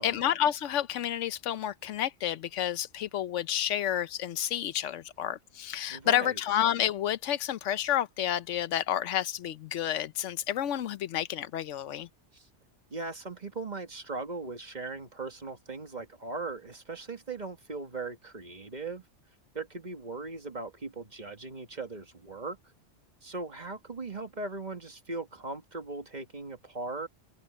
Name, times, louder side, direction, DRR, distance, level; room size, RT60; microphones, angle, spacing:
voice 1, 0.0-12.1, left 11 dB, 90° left, 1.0 m, -30 dB
voice 2, 5.9-6.4 12.3-12.5 12.9-19.0 19.6-22.6 23.2-27.1, right 3 dB, 40° right, 1.8 m, -39 dB
open air
omnidirectional pair, 1.2 m